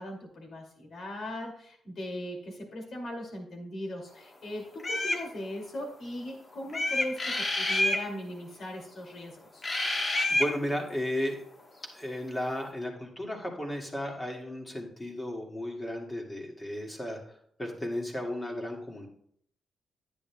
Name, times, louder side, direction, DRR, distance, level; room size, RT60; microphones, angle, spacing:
voice 1, 0.0-9.6, left 1 dB, 60° left, 2 dB, 2.5 m, -39 dB
sound 1, 4.8-5.2 6.7-8.0 9.6-10.5, left 1 dB, 40° left, 1.2 m, -28 dB
voice 2, 9.8-11.4 11.9-19.1, left 1 dB, 20° left, 0 dB, 2.0 m, -34 dB
10.0 x 8.8 x 2.3 m, 0.65 s
cardioid pair, 80°, 0 cm